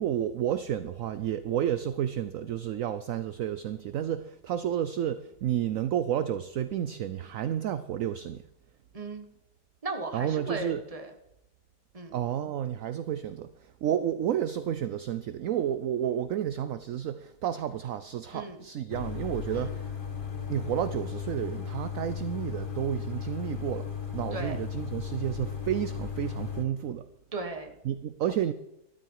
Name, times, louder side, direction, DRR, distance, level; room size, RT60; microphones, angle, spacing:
voice 1, 0.0-8.4 10.1-10.8 12.1-19.9 20.5-23.9 24.1-27.0 27.8-28.5, right 10 dB, 65° right, 13 dB, 0.9 m, -31 dB
voice 2, 8.9-9.3 9.8-11.1 11.9-12.1 18.3-18.6 19.5-19.7 24.3-24.6 27.3-27.7 28.3-28.4, right 3 dB, 20° right, 5 dB, 1.4 m, -36 dB
sound 1, 18.9-26.6, left 7 dB, 30° left, 1.6 m, -36 dB
13.0 x 12.5 x 4.7 m, 0.84 s
omnidirectional pair, 1.8 m